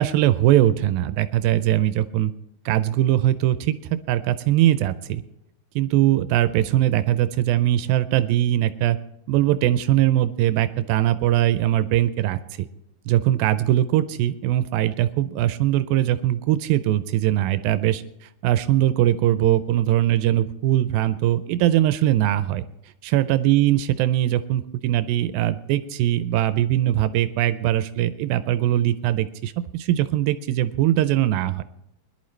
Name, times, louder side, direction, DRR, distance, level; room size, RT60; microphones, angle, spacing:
voice 1, 0.0-2.3 2.7-3.7 4.1-5.2 5.8-9.0 9.3-12.4 13.1-18.0 18.4-22.6 23.1-31.6, right 13 dB, 85° right, 12 dB, 2.4 m, -21 dB
22.0 x 11.5 x 3.2 m, 0.81 s
omnidirectional pair, 4.1 m